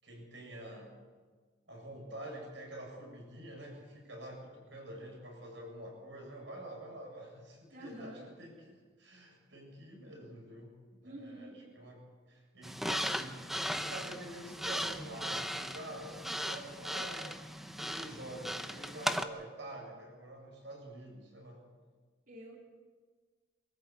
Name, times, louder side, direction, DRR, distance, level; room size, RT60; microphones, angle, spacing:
voice 1, 0.0-0.9 1.7-21.7, right 1 dB, 65° right, 0 dB, 7.5 m, -47 dB
voice 2, 7.7-8.3 11.0-11.6 22.3-22.6, right 1 dB, 45° right, -2 dB, 3.6 m, -47 dB
sound 1, 12.6-19.2, equal, ahead, 0.8 m, -37 dB
25.5 x 14.0 x 8.3 m, 1.5 s
head